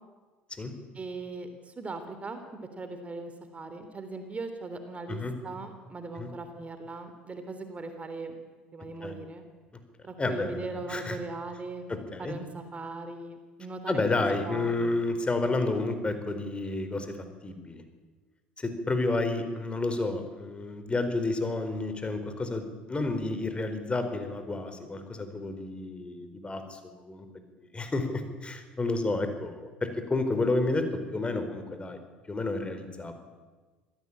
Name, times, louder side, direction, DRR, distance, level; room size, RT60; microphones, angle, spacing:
voice 1, 0.9-2.4 2.7-8.3 8.7-9.4 10.0-11.9 12.2-14.1 14.5-15.1, right 3 dB, 25° right, 8 dB, 3.5 m, -39 dB
voice 2, 10.2-11.2 11.9-12.3 13.9-17.2 17.4-17.8 18.6-27.3 27.7-30.9 31.1-32.0 32.3-33.1, left 2 dB, 20° left, 8 dB, 4.4 m, -30 dB
25.5 x 17.0 x 8.8 m, 1.3 s
hypercardioid pair, 65°, 5 cm